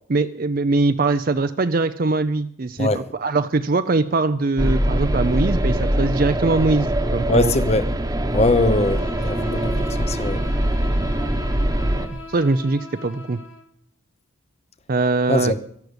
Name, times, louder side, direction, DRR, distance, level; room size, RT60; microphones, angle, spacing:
voice 1, 0.1-7.5 12.3-13.4 14.9-15.5, right 3 dB, 45° right, 0.5 m, -21 dB
sound 1, 4.6-12.1, right 1 dB, 20° right, 1.1 m, -22 dB
voice 2, 7.3-7.8 8.3-10.4 15.3-15.6, left 2 dB, 30° left, 0.7 m, -21 dB
Bowed string instrument, 8.5-13.7, left 2 dB, 70° left, 1.4 m, -38 dB
12.5 x 11.5 x 8.0 m
head